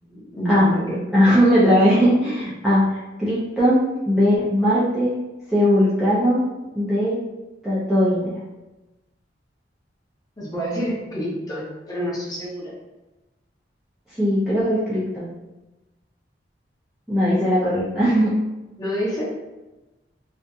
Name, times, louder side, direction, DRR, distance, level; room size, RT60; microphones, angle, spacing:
voice 1, 0.0-1.1 10.4-12.7 18.8-19.2, equal, 20° left, -7 dB, 0.8 m, -28 dB
voice 2, 1.1-5.1 5.5-6.4 6.8-7.2 7.6-8.3 14.2-15.3 17.1-18.3, equal, ahead, -12 dB, 0.5 m, -19 dB
2.6 x 2.5 x 2.3 m, 1.1 s
head